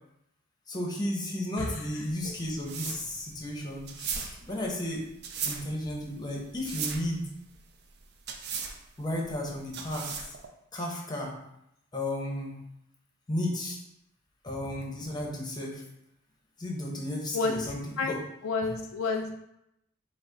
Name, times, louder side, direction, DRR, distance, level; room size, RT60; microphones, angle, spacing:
voice 1, 0.7-5.1 5.4-7.3 9.0-10.3 10.7-11.4 11.9-12.6 13.3-13.8 14.4-15.8 16.6-18.2 18.6-18.7, left 1 dB, 20° left, -1 dB, 0.7 m, -34 dB
sound 1, 2.0-10.5, right 6 dB, 55° right, 0.4 m, -38 dB
voice 2, 18.4-19.3, left 4 dB, 70° left, 3 dB, 0.4 m, -29 dB
4.8 x 2.0 x 3.8 m, 0.81 s
head